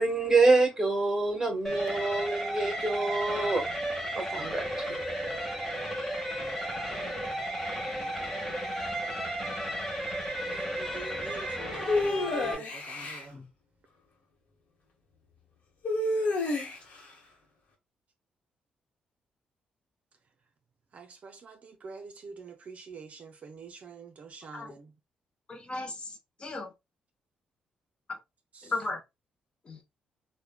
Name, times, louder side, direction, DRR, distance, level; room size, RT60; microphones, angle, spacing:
voice 1, 0.0-3.6 4.1-5.0, right 3 dB, 15° right, 1.1 m, -26 dB
sound 1, 1.6-12.5, right 1 dB, 10° left, 1.0 m, -34 dB
voice 2, 10.5-13.4 20.9-24.9 28.5-28.7, right 5 dB, 50° right, 0.5 m, -46 dB
sound 2, 11.9-13.3 15.8-17.0, left 2 dB, 60° left, 0.9 m, -29 dB
voice 3, 25.5-26.7 28.1-28.2 28.6-29.0 29.7-29.8, left 3 dB, 35° left, 0.5 m, -36 dB
3.1 x 2.1 x 2.2 m
cardioid pair, 85°, 3 cm